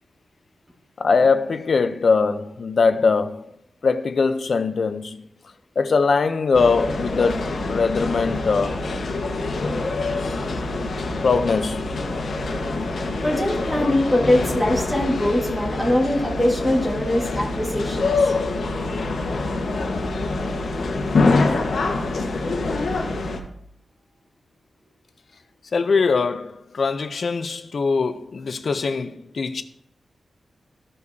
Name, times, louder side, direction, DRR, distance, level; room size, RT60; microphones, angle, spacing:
voice 1, 1.0-3.4 3.8-5.3 5.8-8.8 11.2-11.8 25.7-29.6, left 4 dB, 55° left, 0.5 m, -21 dB
sound 1, 6.5-23.4, left 3 dB, 80° left, 1.2 m, -25 dB
voice 2, 13.2-18.3, left 1 dB, 10° right, 1.6 m, -22 dB
14.5 x 5.4 x 2.7 m
wide cardioid pair, 130°, 0 cm